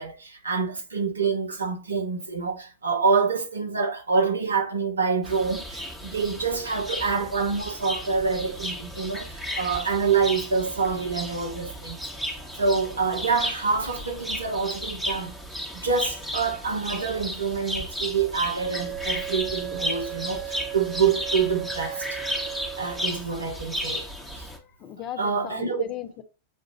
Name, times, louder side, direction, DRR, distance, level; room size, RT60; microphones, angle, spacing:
voice 1, 0.0-12.0 12.6-15.3 15.7-22.2 22.8-24.1 24.4-24.5 25.2-25.8, right 5 dB, 75° right, 0.8 m, -26 dB
sound 1, 5.2-24.6, equal, 5° right, 1.1 m, -34 dB
Wind instrument woodwind instrument, 18.6-23.2, right 12 dB, 45° right, 0.5 m, -36 dB
voice 2, 24.7-26.2, left 12 dB, 35° left, 0.6 m, -37 dB
7.3 x 2.5 x 2.9 m
figure-of-eight pair, 90°, 0 cm